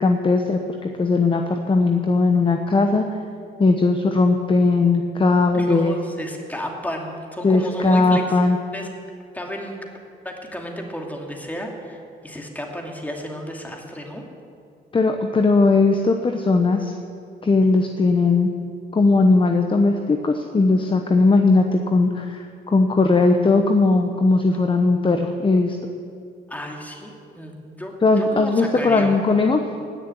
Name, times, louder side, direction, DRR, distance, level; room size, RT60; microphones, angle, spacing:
voice 1, 0.0-3.0 3.6-6.0 7.4-8.6 14.9-16.9 17.4-18.5 18.9-25.8 28.0-29.6, left 3 dB, 25° left, 5 dB, 1.0 m, -18 dB
voice 2, 5.5-8.5 8.7-8.9 9.3-9.8 10.2-14.2 26.5-29.7, equal, 10° left, 1 dB, 2.6 m, -33 dB
18.0 x 6.8 x 9.3 m, 2.4 s
cardioid pair, 90°, 20 cm